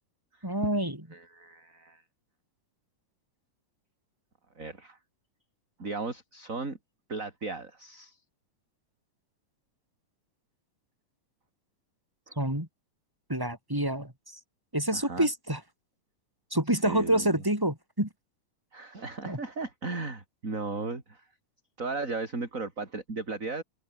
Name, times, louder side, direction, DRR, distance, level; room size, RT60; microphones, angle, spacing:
voice 1, 0.4-1.0 12.4-12.7 13.3-14.4 14.7-15.6 16.5-18.1 19.2-19.4, right 1 dB, 5° right, 6.8 m, -27 dB
voice 2, 1.1-2.0 4.6-5.0 5.8-6.8 7.1-8.2 12.3-12.4 14.9-15.3 16.7-17.4 18.7-21.3 21.8-23.6, right 3 dB, 25° right, 4.0 m, -36 dB
omnidirectional pair, 3.9 m